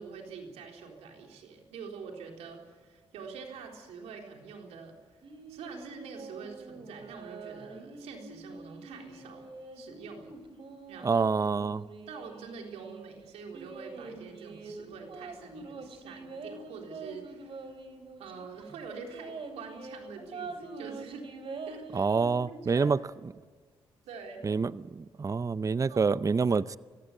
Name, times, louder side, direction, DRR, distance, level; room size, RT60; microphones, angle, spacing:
voice 1, 0.0-5.2 5.5-10.3 10.9-11.2 12.1-17.7 18.2-21.3 21.7-22.1 22.5-22.9 24.1-24.5 25.9-26.1 26.5-26.6, right 5 dB, 85° right, 3.9 m, -45 dB
sound 1, 5.2-13.0 13.5-18.5 18.7-18.8 19.1-22.4, right 3 dB, 55° right, 4.1 m, -45 dB
voice 2, 11.0-11.8 21.9-23.0 24.4-24.7 25.0-26.8, right 5 dB, 30° right, 0.6 m, -27 dB
24.5 x 15.5 x 9.8 m
supercardioid pair, 55°, 11 cm